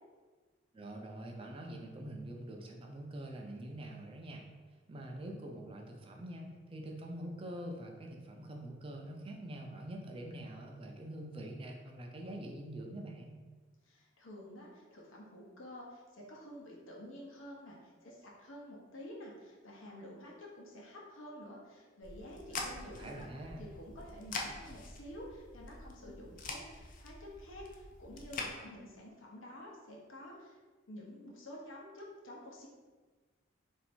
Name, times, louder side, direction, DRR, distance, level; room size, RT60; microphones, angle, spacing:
voice 1, 0.7-4.5 4.9-13.4 22.8-23.6, right 1 dB, 25° right, 1 dB, 0.4 m, -45 dB
voice 2, 13.8-23.3 23.6-30.6 30.9-32.7, left 1 dB, 80° left, -2 dB, 0.9 m, -50 dB
sound 1, 22.0-28.5, left 3 dB, 40° left, 0.4 m, -45 dB
3.1 x 2.7 x 4.3 m, 1.4 s
head